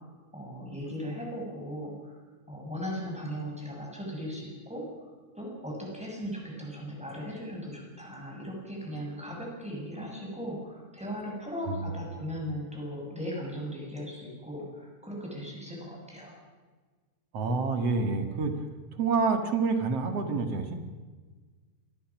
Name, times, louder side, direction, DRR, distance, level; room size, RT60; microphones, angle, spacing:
voice 1, 0.3-2.2 2.5-16.3, equal, ahead, -2 dB, 6.9 m, -38 dB
voice 2, 11.7-12.0 17.3-18.6 19.0-20.7, right 4 dB, 60° right, 6 dB, 2.8 m, -28 dB
27.0 x 21.5 x 6.1 m, 1.4 s
omnidirectional pair, 3.3 m